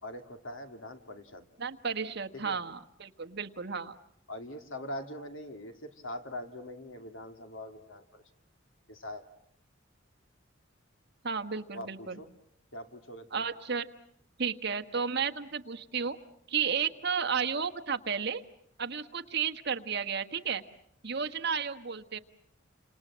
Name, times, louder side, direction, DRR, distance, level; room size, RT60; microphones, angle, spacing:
voice 1, 0.0-1.5 2.3-2.6 4.3-8.2 8.9-9.2 11.7-12.3 12.7-13.4, left 1 dB, 90° left, 6 dB, 2.7 m, -42 dB
voice 2, 1.6-4.0 11.2-12.2 13.3-13.9 14.4-16.2 16.5-18.4 18.8-20.6 21.0-22.2, right 6 dB, 55° right, 8 dB, 1.4 m, -33 dB
29.5 x 26.5 x 7.5 m, 0.70 s
head